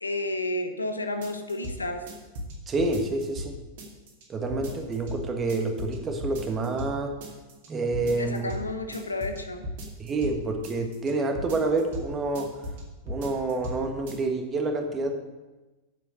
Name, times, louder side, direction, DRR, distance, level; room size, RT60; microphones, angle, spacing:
voice 1, 0.0-2.0 8.2-9.6, left 2 dB, 80° left, 7 dB, 0.8 m, -31 dB
sound 1, 1.2-1.8 2.1-3.5 3.8-4.2 4.5-5.2 5.5-6.0 6.2-6.9 7.2-7.7 7.9-8.6 8.9-10.4 10.6-11.1 11.4-12.1 12.4-12.8 13.1-13.8 14.1-14.2, equal, 50° right, 2.3 m, -36 dB
voice 2, 2.7-3.6 4.3-7.2 7.7-8.5 10.0-12.5 13.0-15.1, right 3 dB, 20° right, 3 dB, 1.5 m, -28 dB
8.1 x 7.4 x 6.4 m, 1.1 s
figure-of-eight pair, 90°, 0 cm